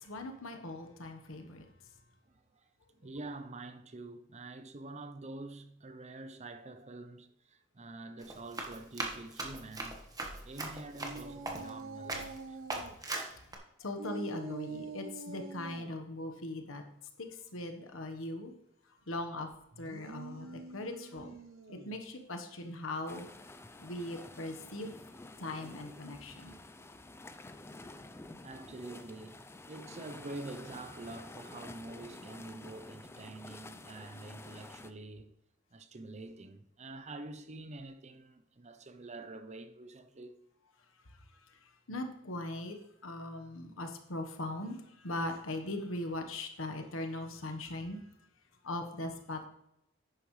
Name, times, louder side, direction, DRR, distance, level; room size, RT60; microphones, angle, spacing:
voice 1, 0.0-1.6 13.8-16.8 17.5-18.5 19.1-19.5 19.8-21.3 21.7-23.3 23.8-24.9 25.4-26.5 41.9-42.8 43.0-44.8 45.0-48.0 48.6-49.4, left 1 dB, 75° left, 1.3 m, -39 dB
voice 2, 2.3-2.6 2.9-10.0 10.4-12.6 28.4-35.3 35.7-40.4, right 2 dB, 35° right, 0.7 m, -46 dB
Run, 8.2-11.8 12.1-12.4 12.7-13.6, right 2 dB, 20° right, 1.4 m, -39 dB
sound 1, 11.0-12.9 14.0-15.9 19.7-22.0, right 3 dB, 70° right, 1.0 m, -45 dB
sound 2, 23.1-34.9, left 2 dB, 10° left, 0.5 m, -50 dB
10.5 x 9.1 x 3.2 m
head